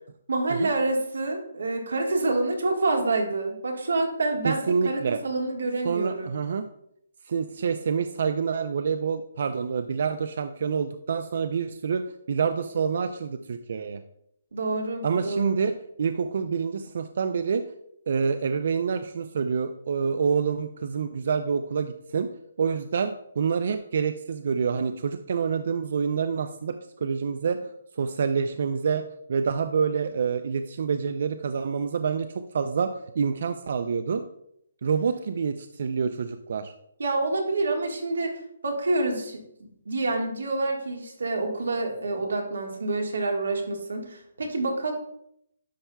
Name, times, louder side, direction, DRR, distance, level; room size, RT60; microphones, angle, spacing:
voice 1, 0.3-4.6 4.8-6.3 14.5-15.4 37.0-38.3 38.6-44.9, right 2 dB, 90° right, 2 dB, 1.5 m, -27 dB
voice 2, 4.4-5.2 5.8-6.7 7.3-12.0 12.3-14.0 15.0-15.7 16.0-17.6 18.1-22.3 22.6-27.6 28.0-29.0 29.3-34.3 34.8-36.7, right 6 dB, 50° right, 9 dB, 0.3 m, -27 dB
10.0 x 5.5 x 2.3 m, 0.74 s
hypercardioid pair, 175°, 0 cm